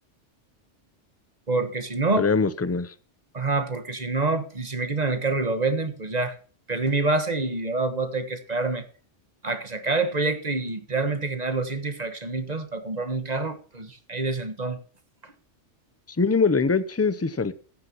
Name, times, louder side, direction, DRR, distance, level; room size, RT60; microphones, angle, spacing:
voice 1, 1.5-2.3 3.3-6.3 6.7-8.9 9.4-14.8, right 3 dB, 35° right, 1.3 m, -27 dB
voice 2, 2.2-2.9 16.2-17.5, left 4 dB, 20° left, 0.4 m, -22 dB
14.5 x 10.0 x 2.9 m
omnidirectional pair, 1.2 m